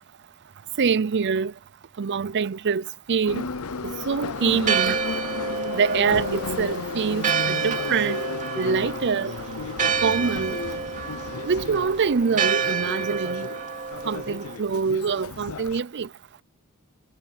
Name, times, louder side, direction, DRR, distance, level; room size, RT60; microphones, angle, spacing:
voice 1, 0.8-1.5 2.0-3.4 3.8-5.0 5.7-8.2 8.6-9.3 10.0-10.6 11.5-13.5 14.1-16.1, right 5 dB, 55° right, 0.5 m, -25 dB
Subway metro underground, 3.3-15.8, left 4 dB, 75° left, 0.8 m, -34 dB
Church bell, 4.4-14.6, right 6 dB, 35° right, 2.8 m, -29 dB
head